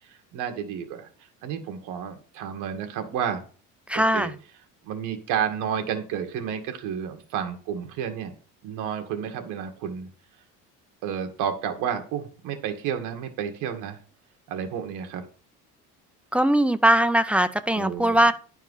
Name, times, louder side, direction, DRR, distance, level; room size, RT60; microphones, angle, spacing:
voice 1, 0.1-1.1 1.4-3.4 4.1-4.3 4.8-8.3 8.6-10.1 11.0-14.0 14.5-15.2 17.7-18.2, right 8 dB, 75° right, 6 dB, 1.8 m, -31 dB
voice 2, 3.9-4.3 16.3-18.3, right 1 dB, 5° right, 11 dB, 0.3 m, -20 dB
10.5 x 4.6 x 5.5 m, 0.41 s
cardioid pair, 150°, 31 cm